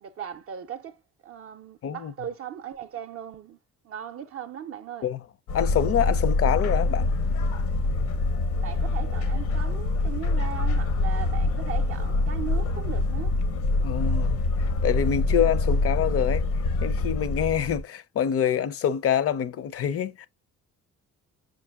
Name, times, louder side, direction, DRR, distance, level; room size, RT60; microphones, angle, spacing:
voice 1, 0.0-3.6 3.8-5.1 8.6-13.3, right 9 dB, 50° right, 0.5 m, -38 dB
sound 1, 5.5-17.8, left 2 dB, 80° left, 0.8 m, -25 dB
voice 2, 5.5-7.1 13.8-14.4 14.8-16.4 16.8-20.3, left 9 dB, 50° left, 0.5 m, -26 dB
5.8 x 2.5 x 2.3 m
cardioid pair, 90°, 30 cm